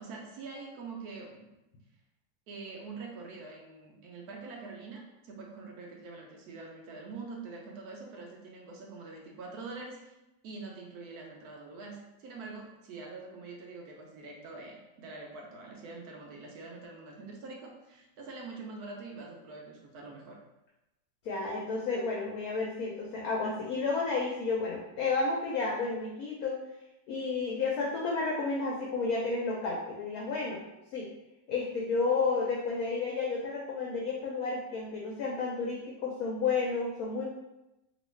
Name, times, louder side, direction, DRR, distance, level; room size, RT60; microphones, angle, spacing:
voice 1, 0.0-1.5 2.5-10.1 10.4-20.4, right 3 dB, 70° right, -1 dB, 1.0 m, -45 dB
voice 2, 21.2-26.6 27.1-30.6 30.9-31.1 31.5-37.3, left 4 dB, 75° left, -2 dB, 0.8 m, -31 dB
3.0 x 2.5 x 3.1 m, 0.94 s
omnidirectional pair, 2.0 m